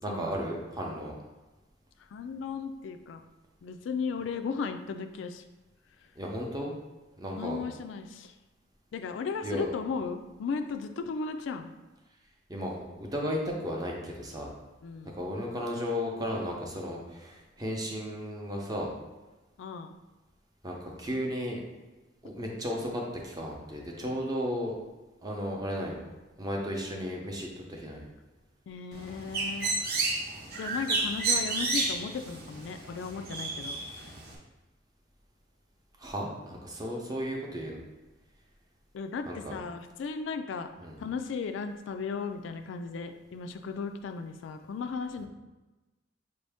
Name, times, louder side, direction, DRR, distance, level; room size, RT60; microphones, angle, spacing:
voice 1, 0.0-1.1 6.2-6.8 7.2-7.6 9.4-9.7 12.5-14.5 15.1-18.9 20.6-21.6 22.2-24.7 25.2-26.0 26.4-28.1 36.0-37.8 39.3-39.5 40.8-41.0, equal, 20° right, -1 dB, 0.6 m, -34 dB
voice 2, 2.1-3.2 3.6-5.4 7.3-8.3 8.9-11.7 14.8-15.2 19.6-19.9 28.7-29.8 30.6-33.8 38.9-40.7 41.0-45.3, left 5 dB, 70° left, 7 dB, 0.3 m, -36 dB
Bird, 28.9-34.3, right 3 dB, 50° right, 0.8 m, -31 dB
5.4 x 2.7 x 3.4 m, 1.1 s
head